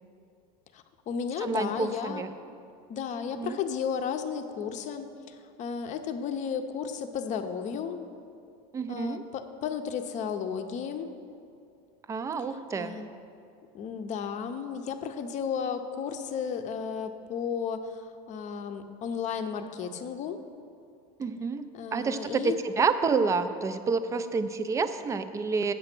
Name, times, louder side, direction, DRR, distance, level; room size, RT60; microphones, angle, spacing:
voice 1, 0.7-2.2 2.9-8.1 8.9-11.1 12.7-13.1 13.7-20.4 21.7-22.6, left 7 dB, 40° left, 8 dB, 0.6 m, -34 dB
voice 2, 1.4-2.3 3.3-3.6 8.7-9.2 12.1-13.0 21.2-25.7, right 4 dB, 15° right, 11 dB, 0.4 m, -29 dB
8.8 x 6.6 x 6.0 m, 2.5 s
supercardioid pair, 135°, 20 cm